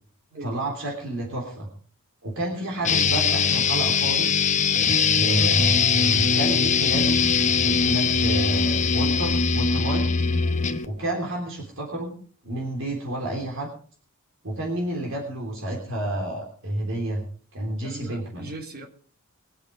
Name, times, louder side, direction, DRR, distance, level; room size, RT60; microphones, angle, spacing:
voice 1, 0.4-1.7 2.2-4.5 5.1-7.2 7.6-10.1 10.8-12.1 12.4-13.7 14.4-17.2 17.5-18.5, right 1 dB, 60° right, 0 dB, 3.3 m, -30 dB
sound 1, 2.8-10.9, left 5 dB, 35° left, 1.0 m, -21 dB
voice 2, 17.8-18.9, right 2 dB, 45° right, 3 dB, 3.2 m, -39 dB
22.5 x 8.6 x 4.9 m, 0.43 s
head